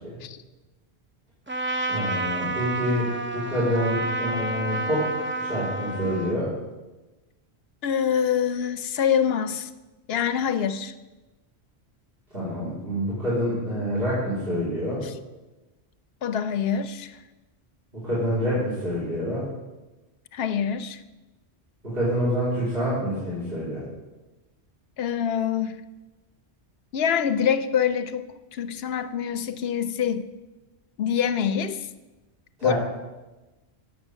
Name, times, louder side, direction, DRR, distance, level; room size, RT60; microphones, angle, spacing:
Trumpet, 1.5-6.4, right 2 dB, 15° right, 0.4 m, -30 dB
voice 1, 1.9-6.5 12.3-15.0 17.9-19.4 21.8-23.8 32.6-32.7, equal, 60° right, -10 dB, 4.2 m, -27 dB
voice 2, 7.8-9.7 10.1-10.9 13.8-13.9 15.0-15.1 16.2-17.2 20.3-21.0 25.0-25.8 26.9-30.3 31.0-31.9 32.6-32.7, left 8 dB, 70° left, 11 dB, 0.8 m, -25 dB
10.5 x 7.2 x 6.3 m, 1.1 s
omnidirectional pair, 1.1 m